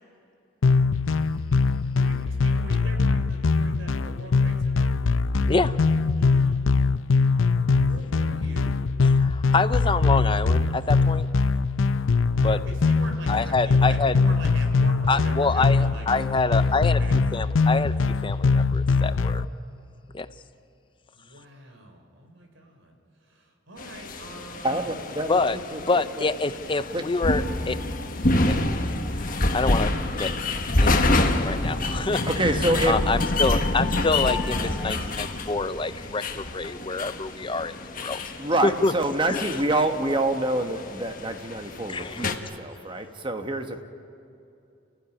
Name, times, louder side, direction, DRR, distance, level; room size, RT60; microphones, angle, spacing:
sound 1, 0.6-19.5, left 4 dB, 75° left, 0.6 m, -22 dB
voice 1, 2.0-4.9 6.2-6.6 7.8-8.8 12.6-17.4 21.1-22.9 23.3-24.9, right 1 dB, 70° right, 4 dB, 3.8 m, -43 dB
voice 2, 9.0-11.3 12.4-12.6 13.3-14.2 15.1-17.0 17.3-17.9 18.2-19.4 20.1-20.3 25.3-25.6 25.9-27.8 28.4-28.6 29.2-30.3 30.8-38.2 38.6-38.9 39.3-39.4 41.9-42.3, left 3 dB, 25° left, 13 dB, 0.6 m, -26 dB
sound 2, 23.8-42.3, left 2 dB, 45° left, 1.4 m, -27 dB
voice 3, 24.6-26.3 26.9-27.0 32.3-33.0 38.4-43.8, right 2 dB, 25° right, 6 dB, 1.4 m, -27 dB
29.5 x 15.0 x 10.0 m, 2.7 s
head